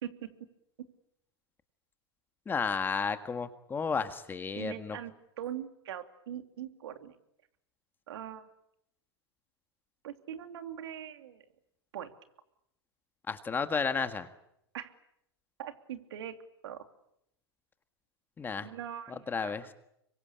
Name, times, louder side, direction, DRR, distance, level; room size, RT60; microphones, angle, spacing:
voice 1, 2.5-5.0 13.3-14.3 18.4-18.7 19.1-19.7, left 5 dB, 15° left, 9 dB, 1.7 m, -32 dB
voice 2, 4.6-5.1 5.4-7.1 8.1-8.5 10.0-11.4 11.9-12.1 14.7-14.9 15.6-16.3 16.6-16.8 18.6-19.5, right 10 dB, 70° right, 7 dB, 3.1 m, -41 dB
26.0 x 23.0 x 8.7 m, 0.78 s
hypercardioid pair, 130°, 14 cm